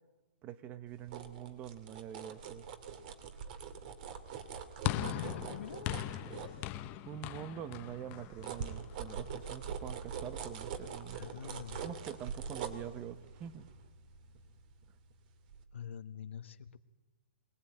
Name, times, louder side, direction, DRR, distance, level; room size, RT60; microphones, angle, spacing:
voice 1, 0.4-2.7 7.1-13.7, right 10 dB, 25° right, 14 dB, 0.8 m, -45 dB
sound 1, 0.9-7.1 7.6-15.1 15.5-15.6, right 6 dB, 45° right, 2.4 m, -44 dB
sound 2, 4.8-9.3, left 14 dB, 30° left, 0.8 m, -39 dB
voice 2, 4.9-5.9 11.1-11.9 15.7-16.8, left 7 dB, 75° left, 10 dB, 1.3 m, -45 dB
23.5 x 19.0 x 9.0 m, 1.3 s
hypercardioid pair, 145°, 7 cm